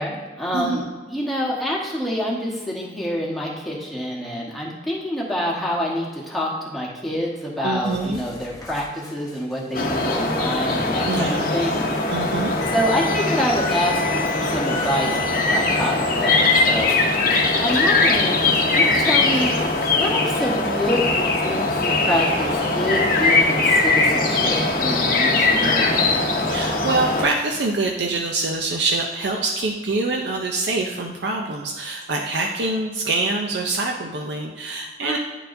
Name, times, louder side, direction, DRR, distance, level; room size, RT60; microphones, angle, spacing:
voice 1, 0.0-11.9 12.7-16.9 17.3-19.6 19.9-21.7 22.0-26.1 35.0-35.2, equal, ahead, -5 dB, 1.2 m, -27 dB
voice 2, 0.5-0.8 7.6-8.2 11.1-11.4 12.1-12.5 26.5-35.2, right 3 dB, 70° right, 1 dB, 0.5 m, -25 dB
sound 1, 7.8-15.9 16.3-17.1 17.3-17.9 18.1-20.0, left 5 dB, 20° left, 0.8 m, -36 dB
sound 2, 9.7-27.3, left 3 dB, 50° left, 0.8 m, -20 dB
9.7 x 4.5 x 2.6 m, 1.3 s
head